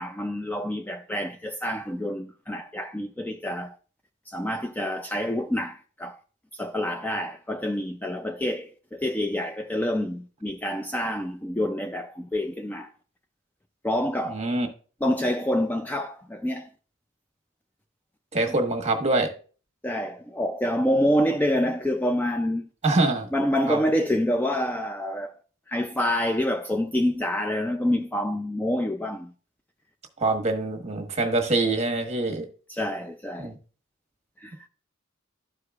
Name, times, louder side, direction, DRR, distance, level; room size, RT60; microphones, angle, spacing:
voice 1, 0.0-3.8 4.3-6.2 6.5-12.9 13.8-14.5 15.0-16.7 19.8-22.7 23.3-25.4 25.7-29.3 32.7-33.5 34.4-34.7, left 1 dB, 10° left, 0.3 m, -27 dB
voice 2, 14.3-14.7 18.3-19.3 22.8-23.3 23.7-23.8 30.2-32.5 33.4-33.6, right 2 dB, 30° right, 1.3 m, -24 dB
12.5 x 4.8 x 2.3 m
head